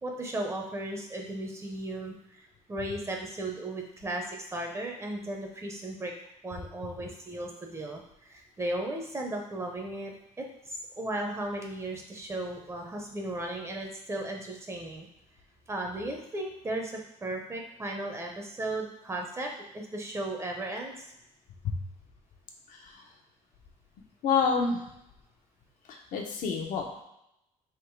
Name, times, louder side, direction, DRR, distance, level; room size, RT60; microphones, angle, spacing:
voice 1, 0.0-6.1 6.4-15.1 15.7-21.1, right 1 dB, 20° right, 1 dB, 0.7 m, -36 dB
voice 2, 22.7-23.0 24.2-24.8 25.9-26.9, left 5 dB, 70° left, 2 dB, 0.8 m, -28 dB
3.6 x 2.9 x 4.6 m, 0.83 s
cardioid pair, 125°, 14 cm